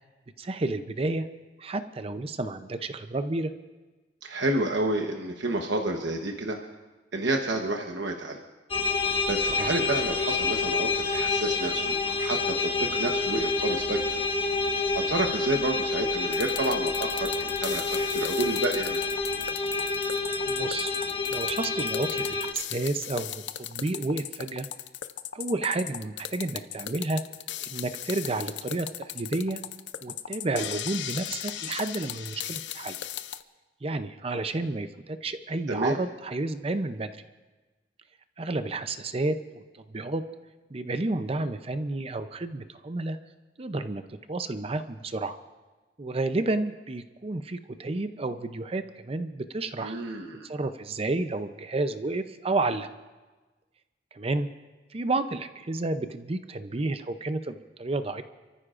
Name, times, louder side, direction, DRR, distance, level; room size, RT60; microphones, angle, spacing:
voice 1, 0.4-1.3 1.6-3.5 9.5-9.7 20.5-20.9 21.3-24.7 25.3-27.2 27.6-29.6 30.0-32.9 33.8-37.2 38.4-39.6 39.9-40.2 40.7-43.2 43.6-45.4 46.0-49.9 50.4-52.9 54.1-54.5 54.9-58.2, right 2 dB, 35° right, 10 dB, 0.6 m, -31 dB
voice 2, 4.2-6.6 7.1-8.4 9.3-14.0 14.9-19.0 35.7-36.0 49.8-50.5, right 2 dB, 80° right, 2 dB, 1.1 m, -30 dB
sound 1, 8.7-22.5, left 3 dB, 30° left, 0.9 m, -28 dB
sound 2, 16.3-33.4, left 11 dB, 80° left, 0.5 m, -37 dB
28.5 x 14.5 x 2.5 m, 1.2 s
head